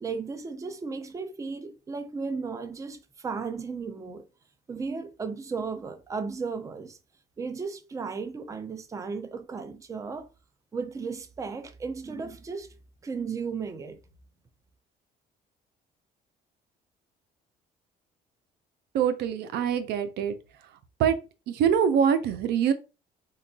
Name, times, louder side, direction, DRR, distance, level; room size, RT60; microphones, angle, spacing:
voice 1, 0.0-4.2 4.7-7.0 7.4-10.3 10.7-12.7 13.0-14.0, right 5 dB, 20° right, 0.4 m, -35 dB
voice 2, 18.9-20.4 21.0-21.1 21.5-22.7, right 8 dB, 75° right, 0.5 m, -24 dB
3.9 x 2.2 x 2.6 m
cardioid pair, 110°, 17 cm